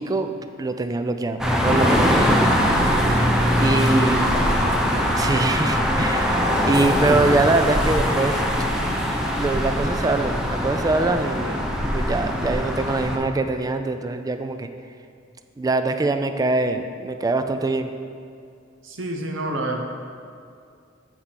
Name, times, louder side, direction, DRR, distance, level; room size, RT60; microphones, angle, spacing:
voice 1, 0.0-2.5 3.6-4.5 5.2-8.4 9.3-14.7 15.6-17.9, right 2 dB, 20° right, 8 dB, 0.3 m, -24 dB
sound 1, 1.4-13.2, equal, 5° right, 0.7 m, -21 dB
voice 2, 18.8-19.8, right 1 dB, 70° right, 2 dB, 0.9 m, -28 dB
8.5 x 4.6 x 5.7 m, 2.4 s
head